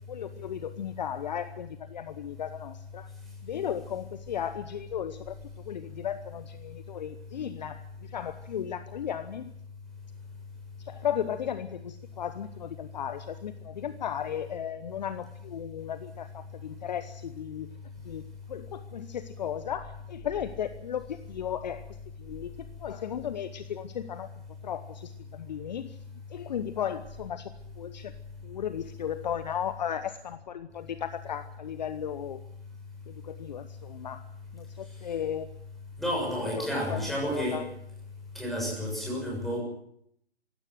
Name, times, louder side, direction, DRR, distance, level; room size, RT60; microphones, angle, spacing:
voice 1, 0.1-3.1 3.4-9.5 10.8-17.7 18.0-18.2 18.5-24.3 24.6-26.0 26.3-28.1 28.4-32.4 33.1-34.3 34.5-35.6 36.5-37.0 37.3-37.7, left 9 dB, 40° left, 12 dB, 1.0 m, -35 dB
voice 2, 36.0-37.6 38.3-39.6, equal, ahead, -2 dB, 6.8 m, -30 dB
23.5 x 16.5 x 7.7 m, 0.73 s
figure-of-eight pair, 140°, 32 cm